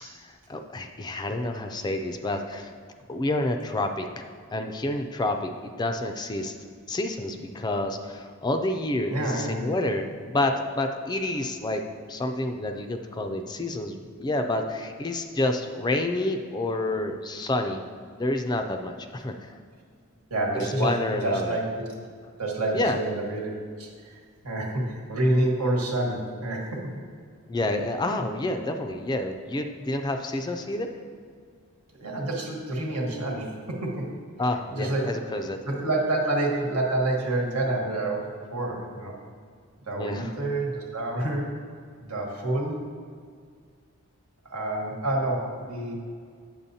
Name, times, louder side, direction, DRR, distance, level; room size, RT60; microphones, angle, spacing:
voice 1, 0.0-2.7 3.1-5.5 5.8-6.5 6.9-11.8 12.1-17.8 18.1-19.6 20.6-21.6 22.7-23.0 27.5-30.9 34.4-35.6 40.0-40.3, left 2 dB, 20° left, 5 dB, 0.3 m, -29 dB
voice 2, 9.1-9.7 20.3-21.8 22.4-27.0 32.0-34.1 34.7-35.1 35.6-39.2 39.9-41.6 42.0-42.9 44.4-45.9, right 1 dB, 85° right, -1 dB, 1.4 m, -28 dB
8.7 x 7.5 x 2.7 m, 2.1 s
head